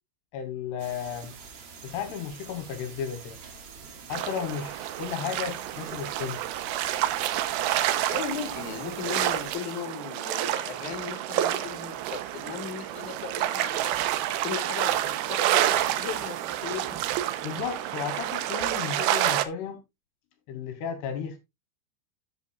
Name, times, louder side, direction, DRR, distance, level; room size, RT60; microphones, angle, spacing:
voice 1, 0.3-1.3 1.8-3.4 4.1-6.4 17.4-19.8 20.5-21.4, left 7 dB, 75° left, 3.0 m, -34 dB
sound 1, 0.8-9.5, right 5 dB, 60° right, 3.9 m, -46 dB
sound 2, 4.1-19.4, right 13 dB, 75° right, 2.3 m, -29 dB
voice 2, 8.1-14.0 14.4-17.0, left 8 dB, 55° left, 2.5 m, -37 dB
13.0 x 8.3 x 2.4 m
omnidirectional pair, 5.2 m